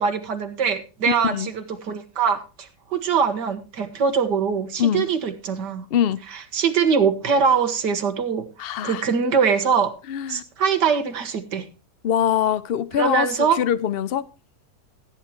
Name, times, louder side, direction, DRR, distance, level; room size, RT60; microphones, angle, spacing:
voice 1, 0.0-5.9 6.3-9.9 10.3-11.6 12.9-13.6, right 6 dB, 85° right, 2.1 m, -23 dB
voice 2, 1.1-1.5 4.8-5.1 5.9-6.2 8.6-9.0 10.1-10.4 12.0-13.3 13.6-14.2, left 10 dB, 70° left, 0.5 m, -23 dB
16.0 x 9.3 x 3.0 m
omnidirectional pair, 1.8 m